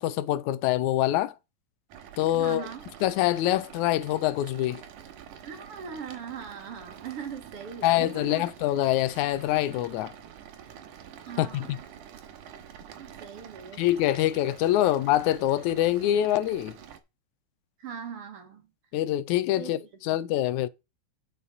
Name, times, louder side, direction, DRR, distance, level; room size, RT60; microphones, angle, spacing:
voice 1, 0.0-1.3 2.2-2.7 3.0-4.8 7.8-10.1 11.4-11.8 13.8-16.8 18.9-20.7, left 13 dB, 80° left, 2.0 m, -25 dB
sound 1, 1.9-17.0, right 9 dB, 85° right, 2.7 m, -47 dB
voice 2, 2.3-2.9 5.4-8.5 11.3-11.7 13.0-13.8 17.8-18.6 19.6-19.7, right 7 dB, 55° right, 2.1 m, -40 dB
9.7 x 5.8 x 5.2 m
omnidirectional pair, 3.5 m